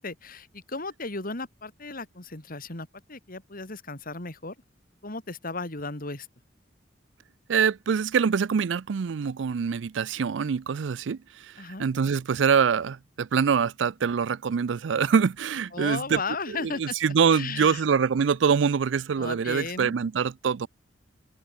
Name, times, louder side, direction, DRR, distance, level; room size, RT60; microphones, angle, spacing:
voice 1, 0.0-4.6 5.0-6.3 11.6-11.9 15.7-17.0 17.3-17.8 19.2-19.9, left 3 dB, 50° left, 3.4 m, -35 dB
voice 2, 7.5-11.5 11.8-16.2 16.5-20.7, right 6 dB, 75° right, 0.4 m, -24 dB
head